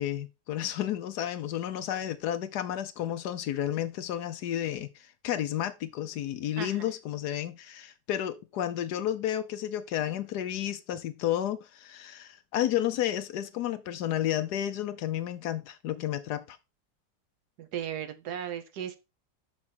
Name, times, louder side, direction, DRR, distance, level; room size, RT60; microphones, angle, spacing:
voice 1, 0.0-16.6, left 11 dB, 70° left, 1.2 m, -32 dB
voice 2, 17.6-19.0, right 9 dB, 70° right, 1.2 m, -36 dB
6.2 x 6.0 x 4.3 m
omnidirectional pair, 1.9 m